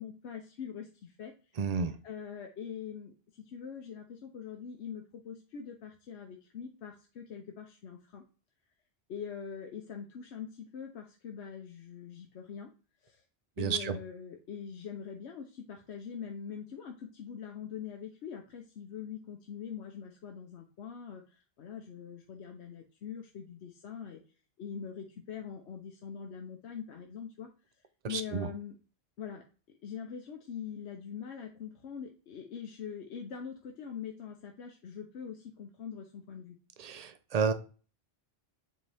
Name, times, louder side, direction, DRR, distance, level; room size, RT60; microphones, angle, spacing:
voice 1, 0.0-8.2 9.1-12.7 13.0-13.2 13.6-24.2 24.6-27.5 28.1-28.8 29.2-29.4 29.8-36.6, left 7 dB, 90° left, 1.1 m, -43 dB
voice 2, 1.6-1.9 13.6-14.0 28.1-28.5 36.8-37.5, right 6 dB, 45° right, 0.7 m, -31 dB
7.7 x 4.1 x 3.4 m
omnidirectional pair, 1.1 m